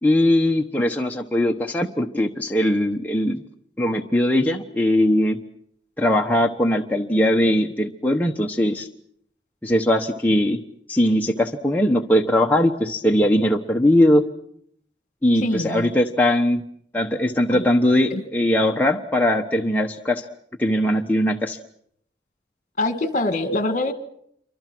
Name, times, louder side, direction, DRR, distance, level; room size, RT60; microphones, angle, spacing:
voice 1, 0.0-3.4 3.8-5.4 6.0-8.9 9.6-10.6 10.9-14.3 15.2-16.6 16.9-20.2 20.6-21.6, left 1 dB, 10° left, 1 dB, 1.1 m, -20 dB
voice 2, 15.4-15.9 17.5-17.7 18.1-18.2 22.8-23.9, left 2 dB, 45° left, 9 dB, 2.0 m, -24 dB
28.0 x 24.5 x 6.2 m, 0.70 s
head